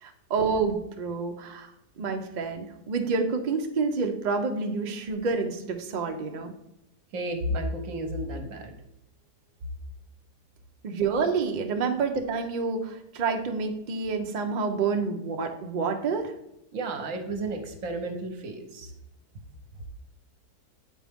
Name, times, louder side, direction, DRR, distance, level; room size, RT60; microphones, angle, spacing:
voice 1, 0.0-1.7 2.0-6.5 10.8-16.3, right 4 dB, 85° right, 4 dB, 0.4 m, -28 dB
voice 2, 7.1-8.8 16.7-18.9, right 1 dB, 60° right, 6 dB, 1.1 m, -32 dB
7.5 x 4.4 x 3.5 m, 0.84 s
omnidirectional pair, 1.7 m